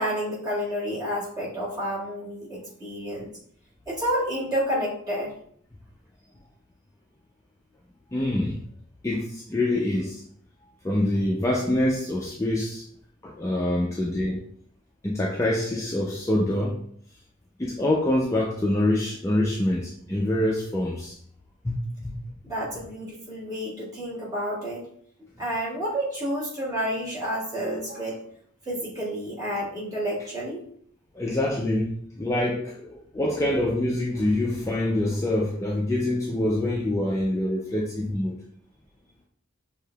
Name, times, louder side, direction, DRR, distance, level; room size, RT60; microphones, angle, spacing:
voice 1, 0.0-3.3 3.9-5.3 22.4-24.8 25.4-28.2 28.7-30.6, equal, 20° right, -8 dB, 1.8 m, -30 dB
voice 2, 8.1-8.6 9.0-10.2 10.8-12.8 13.2-14.4 15.0-16.8 17.6-21.2 21.6-22.1 31.1-38.4, left 1 dB, 15° left, -2 dB, 0.4 m, -25 dB
6.6 x 2.8 x 2.3 m, 0.63 s
head